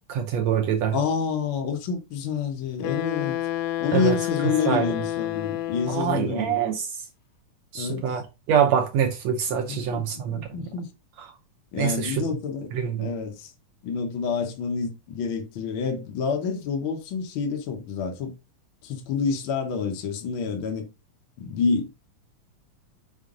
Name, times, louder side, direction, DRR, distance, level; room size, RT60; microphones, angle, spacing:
voice 1, 0.1-1.0 3.9-4.2 4.7-5.0 5.9-6.9 7.7-10.7 11.7-12.2 12.7-13.1, right 8 dB, 75° right, 1.7 m, -25 dB
voice 2, 0.9-3.4 3.8-6.6 7.7-8.2 9.5-10.9 11.7-12.7 13.0-13.5 13.8-18.3 18.8-20.9 21.4-21.9, left 5 dB, 65° left, 1.3 m, -28 dB
Wind instrument woodwind instrument, 2.8-6.3, left 13 dB, 90° left, 2.2 m, -29 dB
5.7 x 4.6 x 3.8 m
omnidirectional pair, 3.7 m